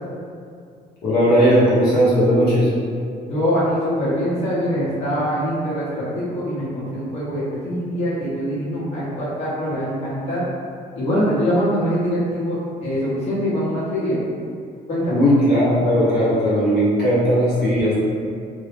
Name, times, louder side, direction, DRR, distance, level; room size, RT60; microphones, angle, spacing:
voice 1, 1.0-2.7 15.1-17.9, equal, 70° left, -9 dB, 0.8 m, -17 dB
voice 2, 3.3-10.4 11.0-14.2 14.9-15.2, equal, 40° left, -9 dB, 0.8 m, -23 dB
2.2 x 2.0 x 3.0 m, 2.3 s
cardioid pair, 110°, 17 cm